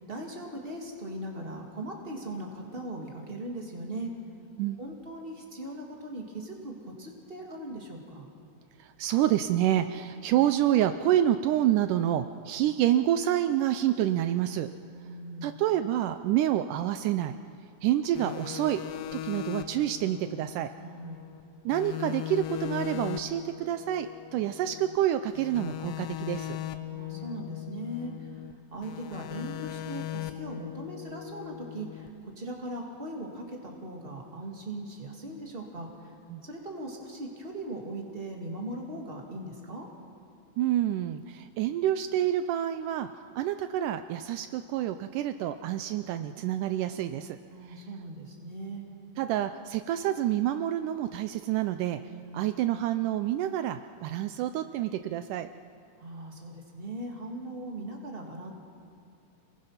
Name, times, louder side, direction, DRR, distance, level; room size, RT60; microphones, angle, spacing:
voice 1, 0.1-4.1 4.8-8.3 14.9-15.5 20.8-21.3 26.9-28.3 28.7-35.9 36.4-39.9 47.5-48.9 52.1-52.4 56.0-58.5, right 1 dB, 20° right, 0 dB, 2.0 m, -39 dB
voice 2, 8.8-14.7 15.4-17.4 17.8-18.8 19.1-20.7 21.7-26.6 36.3-36.4 40.6-43.1 43.4-47.4 47.7-47.8 49.2-52.0 52.3-55.5, right 12 dB, 85° right, 9 dB, 1.8 m, -28 dB
sound 1, 18.2-21.4 21.7-25.0 25.3-28.5 28.8-32.1, left 13 dB, 75° left, 2.5 m, -39 dB
28.5 x 20.5 x 5.8 m, 2.5 s
omnidirectional pair, 4.4 m